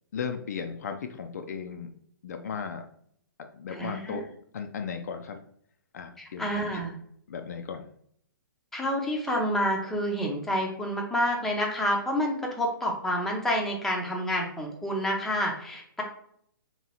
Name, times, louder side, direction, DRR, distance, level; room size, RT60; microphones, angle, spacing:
voice 1, 0.1-1.9 2.2-2.8 3.5-4.2 4.5-5.4 5.9-6.8 7.3-7.9, left 6 dB, 50° left, 6 dB, 0.4 m, -36 dB
voice 2, 3.7-4.2 6.2-7.0 8.7-16.0, equal, 5° left, 0 dB, 0.6 m, -28 dB
3.7 x 2.9 x 4.1 m, 0.68 s
figure-of-eight pair, 120°, 12 cm